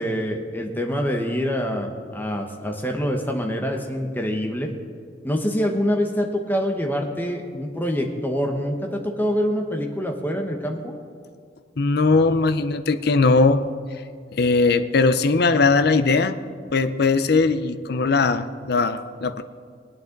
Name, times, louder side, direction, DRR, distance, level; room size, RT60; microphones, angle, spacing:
voice 1, 0.0-4.7 5.2-10.9, equal, 10° left, 2 dB, 1.2 m, -25 dB
voice 2, 11.8-13.7 14.3-16.4 16.7-19.4, left 3 dB, 60° left, 10 dB, 0.6 m, -19 dB
22.0 x 8.9 x 3.9 m, 2.1 s
head